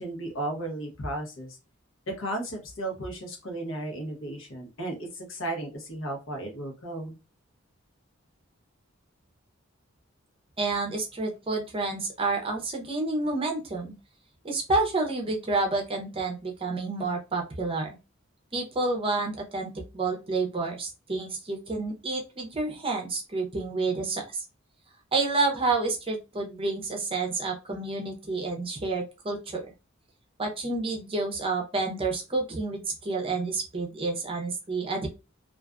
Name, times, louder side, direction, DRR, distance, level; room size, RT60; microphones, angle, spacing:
voice 1, 0.0-1.6 2.1-7.1, right 1 dB, 70° left, 2 dB, 0.9 m, -34 dB
voice 2, 10.6-13.9 14.4-18.0 18.5-24.4 25.1-29.7 30.4-35.1, right 3 dB, 25° right, 2 dB, 0.6 m, -29 dB
2.4 x 2.3 x 2.3 m, 0.28 s
head